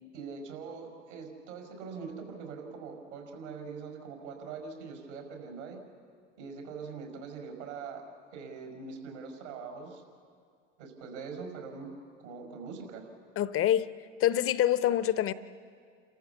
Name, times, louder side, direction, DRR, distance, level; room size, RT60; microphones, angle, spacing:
voice 1, 0.1-5.8 6.4-8.0 8.3-10.0 10.8-11.9 12.2-13.1, right 5 dB, 75° right, 5.4 m, -42 dB
voice 2, 13.4-13.9 14.2-15.3, left 11 dB, 35° left, 0.8 m, -26 dB
29.5 x 14.0 x 7.1 m
hypercardioid pair, 75°, 36 cm